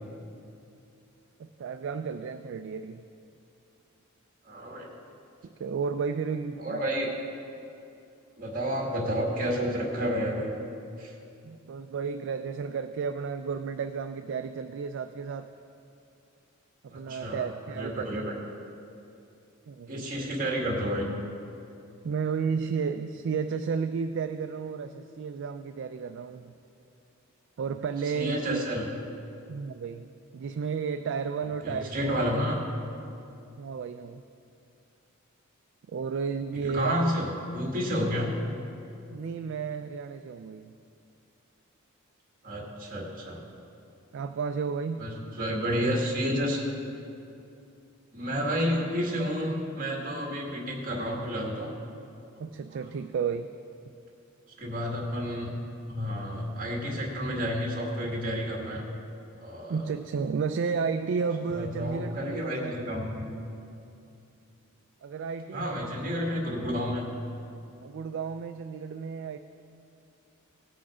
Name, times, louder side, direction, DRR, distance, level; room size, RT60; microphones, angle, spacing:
voice 1, 1.4-3.0 5.6-6.8 11.4-15.5 16.8-18.4 19.7-20.1 22.0-26.5 27.6-28.7 29.5-32.1 33.6-34.2 35.9-37.1 39.1-40.7 44.1-45.1 52.4-53.5 59.7-62.9 65.0-65.9 67.8-69.4, right 5 dB, 60° right, 8 dB, 0.3 m, -32 dB
voice 2, 4.4-4.9 6.6-7.1 8.4-10.5 11.0-11.1 16.9-18.3 19.9-21.1 28.0-28.8 31.6-32.6 36.6-38.3 42.4-43.4 45.0-46.6 48.1-51.7 52.7-52.8 54.6-55.5 55.9-58.9 59.4-59.8 61.5-63.3 65.5-67.0, equal, 40° right, -1 dB, 1.9 m, -30 dB
17.5 x 6.2 x 4.9 m, 2.6 s
head